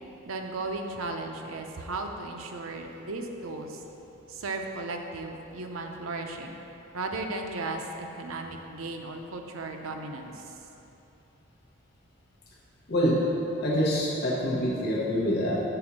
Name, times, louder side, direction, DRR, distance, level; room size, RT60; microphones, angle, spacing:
voice 1, 0.2-3.8 4.3-6.6 6.9-7.8 8.2-10.3, right 2 dB, 80° right, 3 dB, 0.6 m, -35 dB
voice 2, 12.9-13.2 13.6-15.6, equal, 50° left, -5 dB, 1.0 m, -26 dB
6.8 x 4.2 x 6.1 m, 3.0 s
head